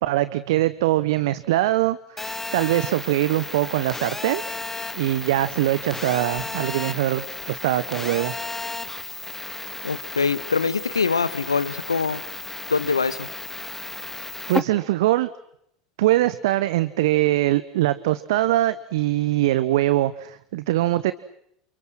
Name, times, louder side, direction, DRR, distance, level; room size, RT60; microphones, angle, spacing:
voice 1, 0.0-4.4 4.9-8.3 14.5-15.3 16.0-21.1, right 15 dB, 65° right, 15 dB, 1.0 m, -22 dB
Telephone, 2.2-14.6, left 3 dB, 15° left, 1.9 m, -33 dB
voice 2, 9.8-12.2 12.7-13.3, left 5 dB, 85° left, 16 dB, 1.3 m, -24 dB
29.5 x 29.0 x 6.2 m, 0.73 s
figure-of-eight pair, 75°, 2 cm